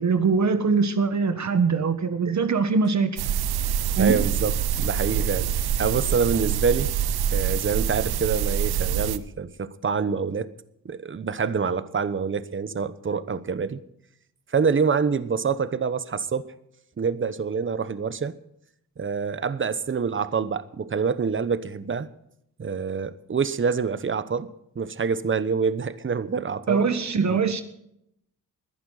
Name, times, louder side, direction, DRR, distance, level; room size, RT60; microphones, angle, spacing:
voice 1, 0.0-3.2 3.9-4.1 26.7-27.6, right 5 dB, 50° right, 1.5 m, -22 dB
sound 1, 3.2-9.2, right 9 dB, 85° right, 0.9 m, -25 dB
voice 2, 4.0-5.5 5.8-6.9 7.3-10.5 10.8-13.8 14.5-16.5 17.0-18.3 19.0-22.1 22.6-26.9 27.3-27.4, right 5 dB, 35° right, 1.0 m, -26 dB
21.0 x 11.5 x 4.1 m
cardioid pair, 100°, 37 cm